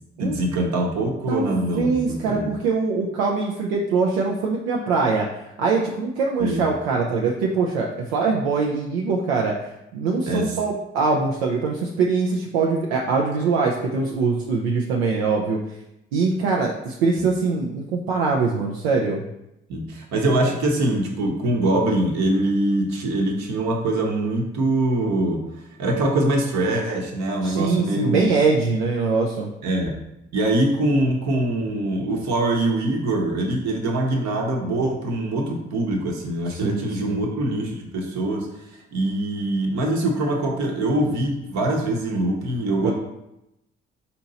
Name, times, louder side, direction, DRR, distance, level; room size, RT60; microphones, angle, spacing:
voice 1, 0.2-2.5 6.4-6.6 10.2-10.5 17.2-17.3 19.7-25.4 25.8-28.3 29.6-30.0 30.3-38.5 38.9-42.9, right 1 dB, 65° right, 1 dB, 1.0 m, -23 dB
voice 2, 1.3-5.3 5.6-15.6 16.1-19.2 27.4-29.5 36.5-37.2 42.8-42.9, right 4 dB, 90° right, -1 dB, 0.5 m, -23 dB
4.4 x 2.8 x 4.0 m, 0.86 s
hypercardioid pair, 50°, 30 cm